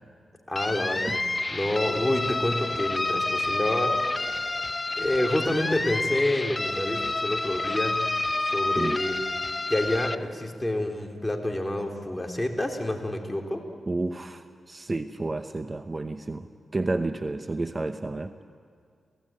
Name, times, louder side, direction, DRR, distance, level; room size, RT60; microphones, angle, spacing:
voice 1, 0.5-1.2 1.5-4.5 5.0-8.0 8.5-9.2 9.7-13.7, left 1 dB, 15° left, 2 dB, 3.5 m, -28 dB
sound 1, 0.6-10.2, left 2 dB, 30° left, 0.9 m, -29 dB
voice 2, 13.9-18.3, right 2 dB, 35° right, 9 dB, 0.9 m, -31 dB
28.0 x 16.5 x 9.0 m, 2.1 s
cardioid pair, 60°, 0 cm